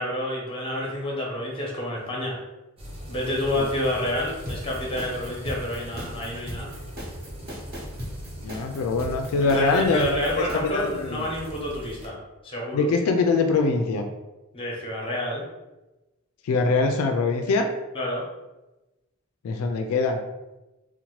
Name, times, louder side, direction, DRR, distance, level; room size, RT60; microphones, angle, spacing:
voice 1, 0.0-2.3 3.1-6.7 9.4-12.1 12.4-12.9 14.5-15.4 17.9-18.2, left 1 dB, 25° left, -3 dB, 0.8 m, -29 dB
sound 1, 2.8-12.1, equal, 25° right, 0.6 m, -40 dB
sound 2, 4.5-10.5, equal, 45° right, 1.0 m, -37 dB
voice 2, 8.4-11.2 12.7-14.0 16.4-17.7 19.4-20.2, left 3 dB, 85° left, 5 dB, 0.3 m, -23 dB
2.8 x 2.1 x 3.0 m, 1.0 s
head